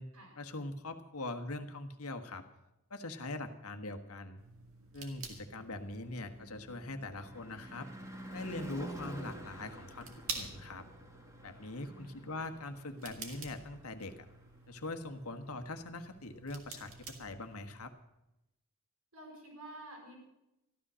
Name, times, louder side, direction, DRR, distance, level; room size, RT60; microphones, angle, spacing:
voice 1, 0.4-2.4 2.9-4.4 4.9-7.9 8.3-10.1 10.3-10.8 11.4-14.1 14.7-17.9, left 2 dB, 80° left, 7 dB, 1.5 m, -42 dB
sound 1, 4.4-17.9, right 5 dB, 65° right, 2.3 m, -50 dB
Car passing by / Truck / Engine, 4.7-14.9, right 1 dB, 15° right, 2.1 m, -50 dB
voice 2, 11.8-12.5 19.1-20.2, right 1 dB, 85° right, 0 dB, 6.4 m, -51 dB
14.5 x 12.5 x 6.3 m, 0.90 s
head